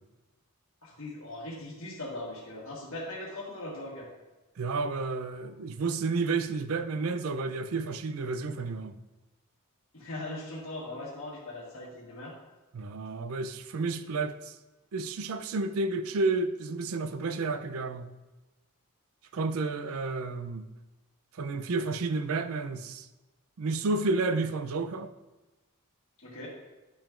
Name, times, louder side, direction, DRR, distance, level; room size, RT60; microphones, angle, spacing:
voice 1, 0.8-4.1 9.9-12.3 26.2-26.5, left 1 dB, 65° left, 1.4 m, -40 dB
voice 2, 4.6-9.0 12.7-14.6 14.9-18.1 19.3-20.7 21.3-23.1 23.6-25.1, right 3 dB, 75° right, 0.5 m, -31 dB
10.5 x 5.8 x 2.5 m
head